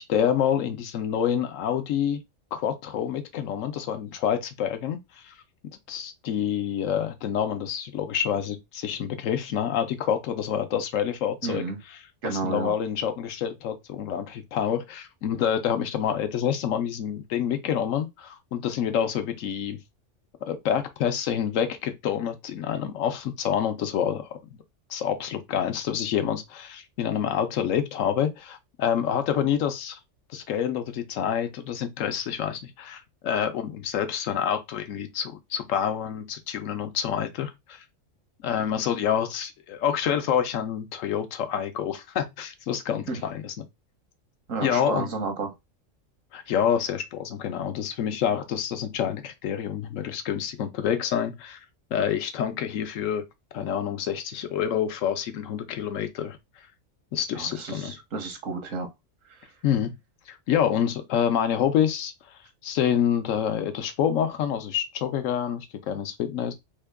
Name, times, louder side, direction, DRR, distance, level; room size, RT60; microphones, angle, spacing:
voice 1, 0.0-2.2 2.5-5.0 5.2-5.3 5.9-11.6 12.3-19.8 20.4-24.6 24.9-30.0 30.3-37.8 38.4-43.5 44.6-45.1 46.3-51.6 51.9-53.2 53.5-56.4 57.1-57.9 59.6-60.0 60.3-62.1 62.6-66.5, left 9 dB, 80° left, 1.0 m, -27 dB
voice 2, 11.4-11.8 12.2-12.7 43.1-43.2 44.5-45.5 57.3-58.9 59.3-59.5, right 4 dB, 85° right, 1.4 m, -31 dB
3.6 x 2.2 x 3.4 m
omnidirectional pair, 1.3 m